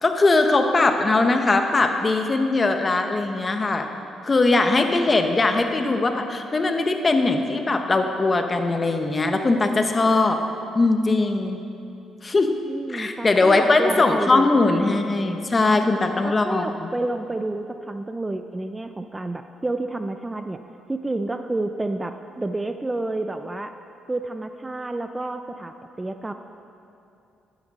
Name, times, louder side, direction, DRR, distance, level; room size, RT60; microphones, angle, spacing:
voice 1, 0.0-3.9 4.2-10.4 10.7-11.6 12.2-12.6 12.9-16.9, left 3 dB, 30° left, 6 dB, 0.9 m, -20 dB
voice 2, 12.7-14.5 14.8-15.2 16.2-20.6 20.9-23.7 24.1-26.3, right 2 dB, 15° right, 8 dB, 0.4 m, -30 dB
11.5 x 9.8 x 4.1 m, 2.7 s
cardioid pair, 90°, 0 cm